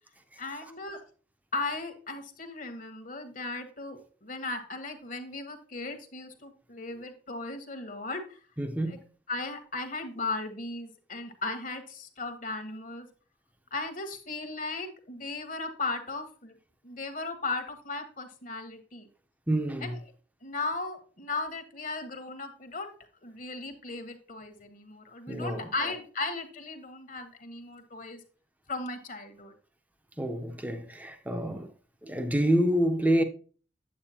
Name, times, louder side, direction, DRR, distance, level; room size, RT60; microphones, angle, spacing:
voice 1, 0.4-1.0 1.5-8.4 8.9-9.0 9.3-13.1 13.7-16.6 16.8-19.1 19.8-20.0 20.4-22.9 23.2-28.2 28.7-29.5, left 3 dB, 50° left, 1.2 m, -36 dB
voice 2, 8.6-9.0 19.5-20.0 25.3-25.7 30.2-31.7 32.0-33.2, right 1 dB, 10° right, 0.7 m, -27 dB
8.8 x 7.7 x 2.8 m
head